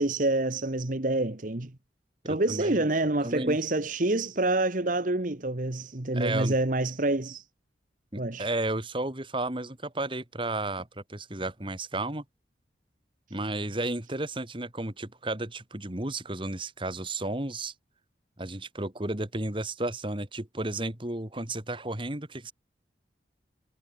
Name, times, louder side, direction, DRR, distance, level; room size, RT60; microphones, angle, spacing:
voice 1, 0.0-1.7 2.2-7.4 8.2-8.5, right 2 dB, 50° right, 1.4 m, -27 dB
voice 2, 2.2-2.8 3.2-3.6 6.1-6.6 8.1-12.2 13.3-17.7 18.4-22.5, right 2 dB, 30° right, 2.3 m, -33 dB
head